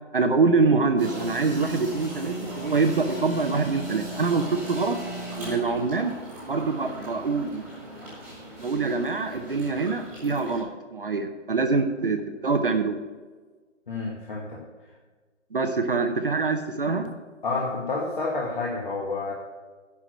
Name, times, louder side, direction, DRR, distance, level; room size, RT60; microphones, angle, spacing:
voice 1, 0.1-5.0 5.4-6.1 6.4-7.6 8.6-13.0 15.5-17.1, right 4 dB, 45° right, 6 dB, 0.8 m, -25 dB
sound 1, 1.0-10.6, right 1 dB, 5° right, 1.8 m, -38 dB
voice 2, 13.9-14.6 17.4-19.3, left 3 dB, 40° left, -3 dB, 1.5 m, -29 dB
11.0 x 4.8 x 7.5 m, 1.4 s
hypercardioid pair, 170°, 38 cm